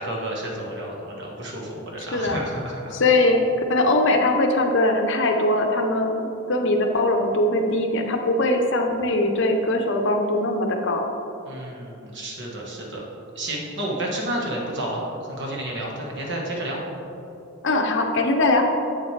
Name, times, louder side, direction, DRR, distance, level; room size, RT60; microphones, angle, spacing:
voice 1, 0.0-3.0 11.5-13.0 13.3-16.8, right 1 dB, 55° right, -2 dB, 1.4 m, -31 dB
voice 2, 2.9-3.4 3.7-11.0 17.6-18.7, left 2 dB, 60° left, 4 dB, 0.7 m, -21 dB
8.0 x 7.3 x 3.3 m, 2.9 s
head